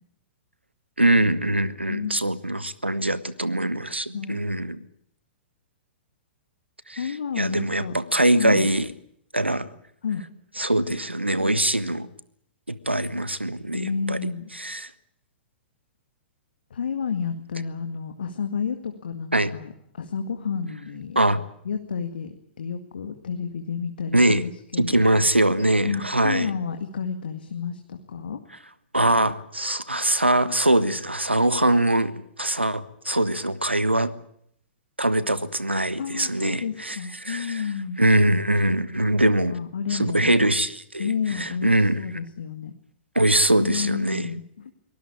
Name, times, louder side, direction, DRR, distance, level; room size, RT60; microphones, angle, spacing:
voice 1, 1.0-4.8 6.9-8.9 9.3-9.7 10.6-12.1 12.7-14.2 14.5-14.9 19.3-19.5 21.1-21.4 24.1-24.4 24.8-26.5 28.9-34.1 35.0-37.7 38.0-39.5 39.9-42.0 43.1-44.3, right 1 dB, 85° right, 15 dB, 1.4 m, -22 dB
voice 2, 7.0-7.9 8.3-8.7 10.0-10.2 13.7-14.5 16.7-25.0 25.8-28.4 36.0-38.0 39.2-40.3 41.0-41.7 42.0-42.7 43.6-44.7, left 6 dB, 60° left, 6 dB, 2.0 m, -30 dB
23.5 x 18.5 x 8.7 m, 0.70 s
figure-of-eight pair, 110°, 6 cm